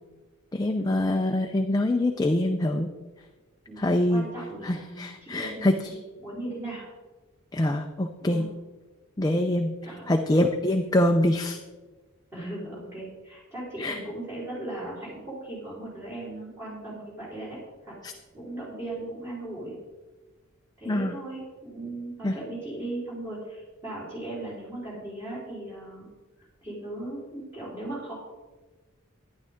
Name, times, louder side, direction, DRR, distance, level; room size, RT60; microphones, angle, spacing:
voice 1, 0.5-2.9 3.8-4.3 4.6-5.9 7.5-8.4 9.2-9.7 10.1-11.6 13.8-14.0 18.0-18.1 20.9-21.2 22.2-22.3, left 1 dB, 20° left, 4 dB, 0.5 m, -24 dB
voice 2, 3.7-5.9 6.2-6.9 8.2-8.4 9.8-10.1 12.3-18.0 18.3-19.7 20.8-26.1 26.6-28.1, right 1 dB, 10° right, -9 dB, 3.9 m, -38 dB
11.5 x 10.5 x 3.6 m, 1.2 s
head